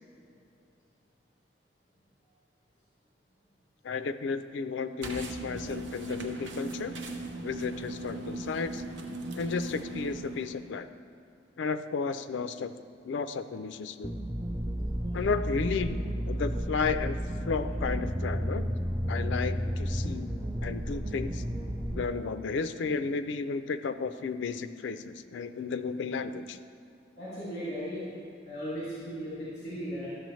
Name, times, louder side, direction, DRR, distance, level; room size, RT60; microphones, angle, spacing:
voice 1, 3.8-6.9 7.4-8.8 9.4-10.9 11.6-12.7 13.0-14.1 15.1-17.2 17.4-18.8 19.1-20.3 20.6-21.4 21.9-26.6, left 5 dB, 80° left, 11 dB, 0.4 m, -33 dB
sound 1, 5.0-10.8, right 2 dB, 85° right, 0.7 m, -39 dB
sound 2, 14.0-22.1, equal, 15° right, 0.4 m, -32 dB
voice 2, 27.2-28.1 28.5-30.1, equal, 40° left, -9 dB, 2.2 m, -36 dB
12.0 x 6.9 x 3.1 m, 2.5 s
head